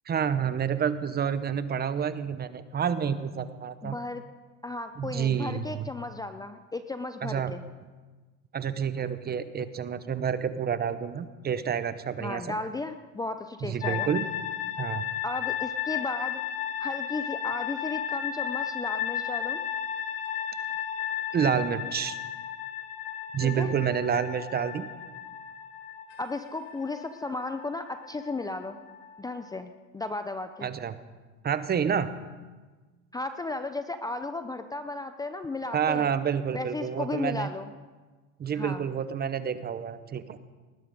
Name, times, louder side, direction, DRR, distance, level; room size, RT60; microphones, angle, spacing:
voice 1, 0.1-4.0 5.0-5.8 7.2-7.5 8.5-12.6 13.6-14.3 14.8-15.0 21.3-22.2 23.3-24.9 30.6-30.9 31.4-32.1 35.7-37.5 38.4-40.4, right 7 dB, 25° right, 13 dB, 0.9 m, -29 dB
voice 2, 3.8-4.2 4.6-7.6 12.2-14.1 15.2-16.4 16.8-19.6 23.4-23.7 26.2-28.8 29.2-30.7 33.1-36.1 36.5-37.7 38.5-38.8, left 2 dB, 10° left, 9 dB, 0.6 m, -35 dB
sound 1, 13.8-29.6, left 9 dB, 70° left, 1.4 m, -34 dB
19.5 x 11.5 x 5.3 m, 1.3 s
supercardioid pair, 110°, 39 cm